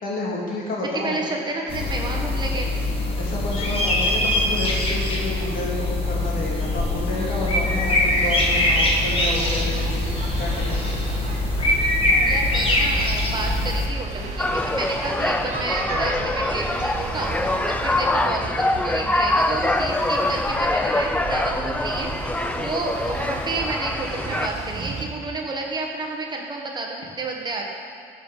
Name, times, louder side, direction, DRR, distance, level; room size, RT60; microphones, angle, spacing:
voice 1, 0.0-1.2 3.2-11.0 22.5-22.8, left 2 dB, 55° left, -4 dB, 2.8 m, -30 dB
voice 2, 1.0-2.7 12.3-22.1 22.3-27.6, right 2 dB, 25° right, 0 dB, 1.3 m, -30 dB
sound 1, 1.7-13.9, left 1 dB, 35° left, 1.8 m, -23 dB
sound 2, 7.6-25.1, right 4 dB, 40° right, 1.4 m, -33 dB
sound 3, 14.4-24.5, left 2 dB, 10° left, 0.4 m, -24 dB
13.5 x 5.4 x 5.6 m, 2.5 s
cardioid pair, 110°, 17 cm